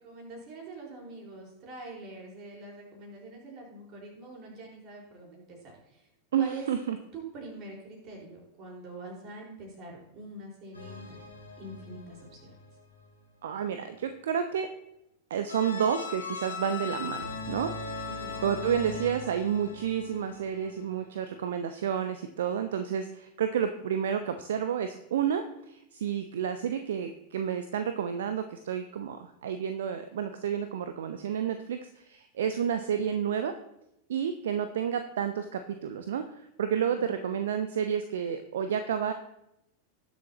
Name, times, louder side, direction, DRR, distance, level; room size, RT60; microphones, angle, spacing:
voice 1, 0.0-6.1 6.4-6.7 7.1-11.2 11.6-12.5 18.0-18.4 36.9-37.3, right 2 dB, 35° right, -2 dB, 4.5 m, -44 dB
voice 2, 6.3-7.0 13.4-14.7 15.3-18.1 18.4-33.5 34.1-39.1, right 8 dB, 60° right, 9 dB, 0.6 m, -30 dB
sound 1, 10.7-12.8 15.5-21.0, left 4 dB, 80° left, 2.8 m, -39 dB
18.5 x 7.2 x 2.9 m, 0.85 s
figure-of-eight pair, 90°, 0 cm